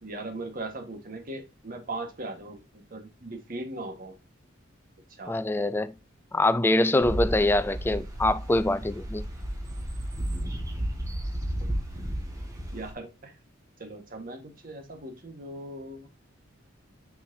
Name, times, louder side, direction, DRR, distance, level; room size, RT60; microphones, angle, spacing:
voice 1, 0.0-4.2 5.2-5.4 12.7-13.3 13.8-16.1, right 2 dB, 45° right, 1.5 m, -39 dB
voice 2, 5.3-5.9 6.3-9.3, left 2 dB, 10° left, 0.3 m, -24 dB
sound 1, 7.0-12.9, equal, 15° right, 1.8 m, -33 dB
6.2 x 5.7 x 2.7 m
head